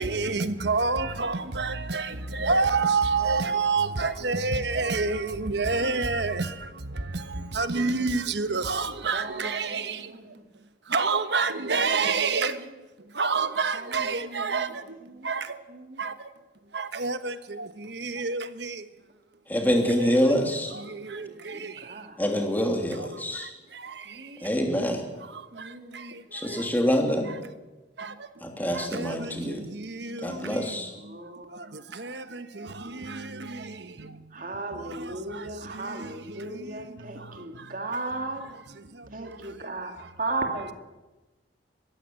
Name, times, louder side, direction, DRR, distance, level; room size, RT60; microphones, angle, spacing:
voice 1, 0.0-10.4 10.9-12.7 13.0-15.6 16.0-16.3 16.7-18.9 20.0-20.2 20.7-22.0 23.0-23.1 23.3-24.5 25.2-26.7 28.0-28.3 28.7-37.8 38.8-39.6 40.0-40.1, right 4 dB, 65° right, 1.2 m, -30 dB
voice 2, 9.1-10.5 11.8-12.7 13.7-14.7 15.0-15.3 15.7-16.0 21.2-22.2 24.1-24.6 25.5-26.2 31.1-31.7 34.3-38.5 39.1-40.7, right 2 dB, 45° right, 2.6 m, -37 dB
voice 3, 19.5-20.7 22.2-23.5 24.4-25.1 26.3-27.3 28.4-29.6 30.2-30.9, equal, 10° left, 3.1 m, -26 dB
22.0 x 15.0 x 7.7 m
head